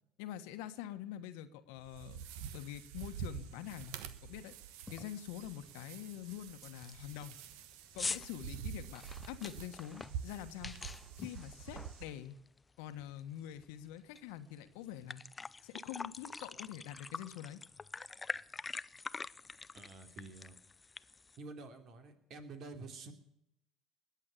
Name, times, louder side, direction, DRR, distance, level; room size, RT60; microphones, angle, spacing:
voice 1, 0.2-2.2 2.5-4.5 4.9-7.4 7.9-10.7 11.2-12.4 12.8-15.2 15.6-17.6, left 11 dB, 75° left, 10 dB, 1.4 m, -45 dB
sound 1, 1.8-12.0, right 8 dB, 75° right, 1.3 m, -47 dB
sound 2, 3.2-3.3 3.8-4.1 4.4-4.5 4.9-5.2 5.6-5.7 6.2-6.3 6.6-12.6 12.9-14.2 14.6-14.7 14.9-21.4, left 4 dB, 20° left, 0.5 m, -45 dB
voice 2, 19.7-20.5 21.4-23.1, right 3 dB, 55° right, 6 dB, 3.0 m, -49 dB
21.0 x 8.2 x 8.4 m, 0.79 s
hypercardioid pair, 75°, 0 cm